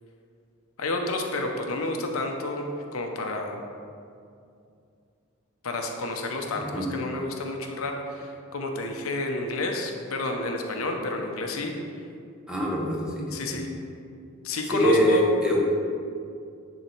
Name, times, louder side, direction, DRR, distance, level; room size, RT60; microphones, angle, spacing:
voice 1, 0.8-3.6 5.6-11.7 13.3-13.7 14.4-15.3, left 2 dB, 80° left, 2 dB, 0.8 m, -30 dB
voice 2, 6.6-6.9 12.5-13.6 14.7-15.6, equal, 5° right, -3 dB, 0.9 m, -24 dB
9.7 x 3.7 x 4.5 m, 2.4 s
head